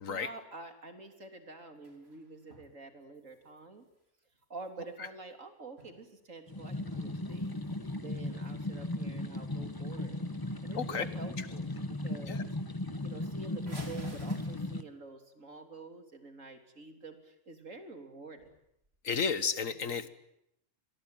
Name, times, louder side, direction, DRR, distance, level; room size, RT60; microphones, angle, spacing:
voice 1, 0.1-3.9 4.5-7.6 7.9-10.2 10.6-12.5 13.0-18.5 19.6-20.1, right 3 dB, 75° right, 7 dB, 3.8 m, -48 dB
sound 1, 1.4-2.7 3.0-5.0 5.5-6.2 6.5-7.9 8.4-8.5 9.0-9.2 9.6-9.7 10.0-10.5 10.9-11.3 11.7-11.8 12.1-12.2 12.5-12.6 13.6-15.1 18.3-19.0, equal, 50° right, 5.4 m, -54 dB
sound 2, 6.5-14.8, left 1 dB, 15° left, 1.2 m, -37 dB
voice 2, 10.7-11.1 12.3-12.4 19.0-20.1, left 5 dB, 80° left, 13 dB, 1.9 m, -32 dB
28.0 x 22.0 x 9.3 m, 0.78 s
omnidirectional pair, 1.3 m